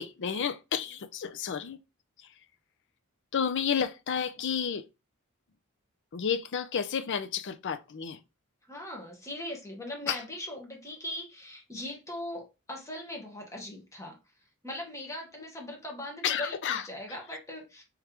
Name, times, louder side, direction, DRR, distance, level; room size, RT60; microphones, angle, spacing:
voice 1, 0.0-1.8 2.2-2.4 3.3-4.8 6.1-8.2 10.1-10.2 16.2-17.2, left 7 dB, 60° left, 0.5 m, -31 dB
voice 2, 8.7-14.1 14.6-17.8, left 1 dB, 15° left, 1.3 m, -40 dB
3.6 x 3.3 x 3.0 m
head